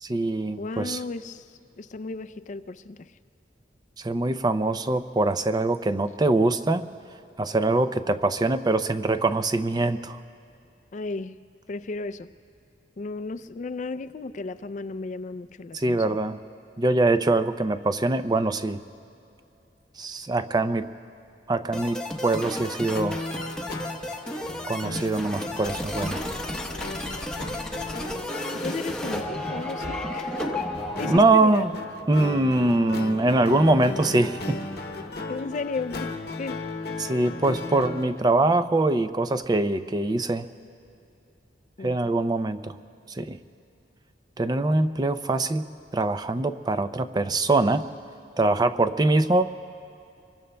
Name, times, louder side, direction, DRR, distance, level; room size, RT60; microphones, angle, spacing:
voice 1, 0.0-1.0 4.0-6.8 7.4-10.2 15.7-16.4 16.8-18.8 20.0-20.9 21.5-23.2 24.7-26.2 31.1-31.7 32.1-34.6 37.0-40.5 41.8-42.8 43.1-43.4 44.4-45.7 45.9-47.8 48.4-49.5, right 2 dB, 25° right, 11 dB, 0.4 m, -23 dB
voice 2, 0.6-1.4 1.8-3.1 10.9-11.4 11.7-12.3 13.0-16.2 28.5-30.6 31.0-31.7 35.3-36.1 36.3-36.6 41.8-42.1, left 3 dB, 45° left, 13 dB, 0.4 m, -34 dB
sound 1, 21.7-31.2, left 1 dB, 5° left, 0.9 m, -33 dB
sound 2, 22.9-38.2, left 2 dB, 60° left, 0.9 m, -36 dB
26.5 x 24.0 x 2.2 m, 2.7 s
head